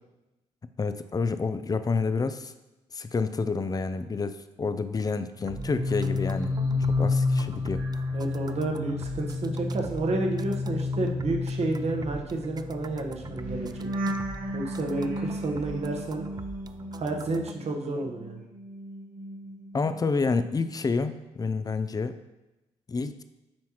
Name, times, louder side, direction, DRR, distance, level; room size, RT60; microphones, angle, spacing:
voice 1, 0.8-2.5 2.9-6.6 6.9-7.8 19.7-22.1 22.9-23.2, left 4 dB, 30° left, 11 dB, 0.5 m, -29 dB
sound 1, 5.4-17.5, right 4 dB, 30° right, 0.3 m, -44 dB
sound 2, 5.4-17.7 18.0-20.1 20.4-20.7, left 2 dB, 80° right, 0.9 m, -31 dB
voice 2, 8.1-13.9 14.5-16.2 16.9-18.4, right 2 dB, 50° right, 2 dB, 1.1 m, -30 dB
7.3 x 4.6 x 3.0 m, 0.99 s
supercardioid pair, 50°, 14 cm